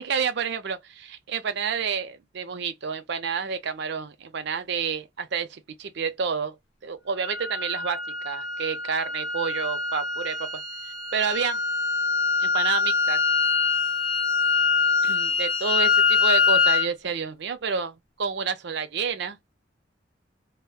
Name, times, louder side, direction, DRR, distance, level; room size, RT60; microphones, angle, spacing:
voice 1, 0.0-6.5 6.8-10.5 11.1-11.6 12.4-13.2 15.0-19.4, right 6 dB, 65° right, 0.5 m, -29 dB
sound 1, 7.2-16.9, left 5 dB, 85° left, 0.8 m, -24 dB
3.4 x 2.1 x 2.2 m
head